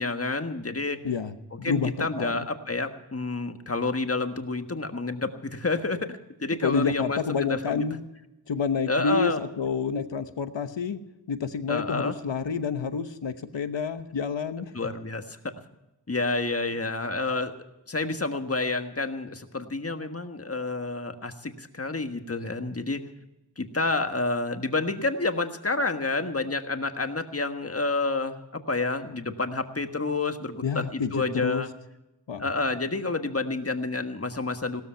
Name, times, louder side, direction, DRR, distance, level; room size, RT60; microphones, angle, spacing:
voice 1, 0.0-1.0 1.5-7.9 8.9-9.4 11.7-12.1 14.7-15.4 16.1-17.5 17.9-23.0 23.6-31.7 32.4-34.8, left 3 dB, 35° left, 7 dB, 1.5 m, -29 dB
voice 2, 1.0-2.5 6.6-8.0 8.5-11.0 11.3-14.7 30.6-31.6 32.3-32.5, left 5 dB, 90° left, 10 dB, 1.1 m, -29 dB
17.0 x 13.0 x 5.7 m, 0.94 s
wide cardioid pair, 65°, 43 cm